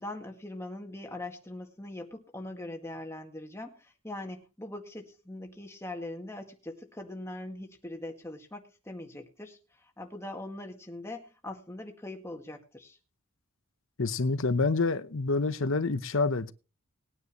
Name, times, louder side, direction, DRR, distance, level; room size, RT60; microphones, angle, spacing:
voice 1, 0.0-13.0, left 1 dB, 10° left, 2.0 m, -41 dB
voice 2, 14.0-16.5, left 3 dB, 65° left, 0.9 m, -27 dB
20.5 x 9.7 x 3.1 m
head